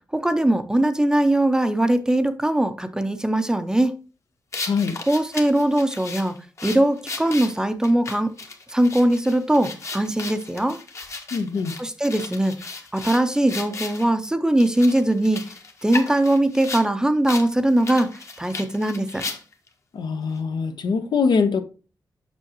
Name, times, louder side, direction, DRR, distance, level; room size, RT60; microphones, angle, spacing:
voice 1, 0.1-3.9 5.1-6.3 6.6-8.3 8.7-10.8 11.8-12.5 12.9-15.4 15.8-18.1 18.4-19.2, right 1 dB, 10° right, 0.6 m, -21 dB
sound 1, 4.5-14.1 14.6-16.9 17.3-17.5 17.8-19.7, left 3 dB, 40° left, 1.1 m, -35 dB
voice 2, 4.6-5.0 11.3-11.7 19.9-21.6, left 5 dB, 75° left, 0.9 m, -23 dB
7.2 x 6.2 x 2.9 m
wide cardioid pair, 145°, 7 cm